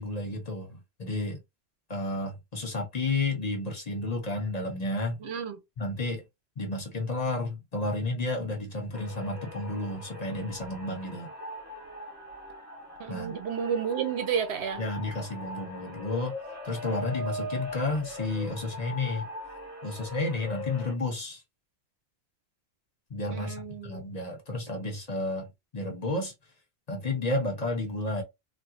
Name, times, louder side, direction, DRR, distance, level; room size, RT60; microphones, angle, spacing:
voice 1, 0.0-1.4 1.9-5.2 5.8-6.2 6.6-11.3 13.1-13.3 14.8-16.4 16.6-19.3 19.8-21.4 23.1-25.5 25.7-26.3 26.9-28.2, left 2 dB, 40° left, 0.9 m, -31 dB
voice 2, 5.2-5.6 13.0-14.8 23.3-24.0, right 7 dB, 75° right, 1.0 m, -31 dB
sound 1, 8.9-20.9, left 1 dB, 15° left, 1.1 m, -40 dB
3.6 x 2.2 x 2.9 m
omnidirectional pair, 1.1 m